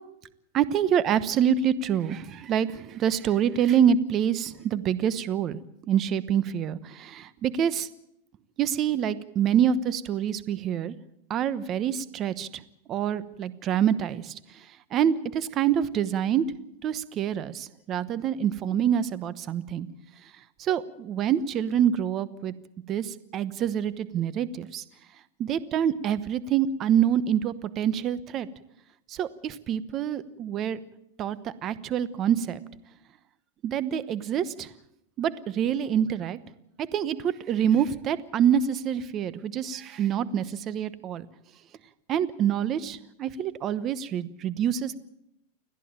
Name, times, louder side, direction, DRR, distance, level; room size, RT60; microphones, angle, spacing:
voice 1, 0.5-5.6 5.9-7.9 8.6-10.9 11.3-12.6 12.9-14.3 14.9-16.4 16.8-19.9 20.6-22.5 22.9-24.8 25.4-28.5 29.1-30.8 31.2-32.6 33.6-34.7 35.2-36.4 36.8-41.3 42.1-45.0, right 9 dB, 30° right, 16 dB, 1.0 m, -26 dB
29.5 x 11.0 x 8.9 m, 0.81 s
supercardioid pair, 150°, 0 cm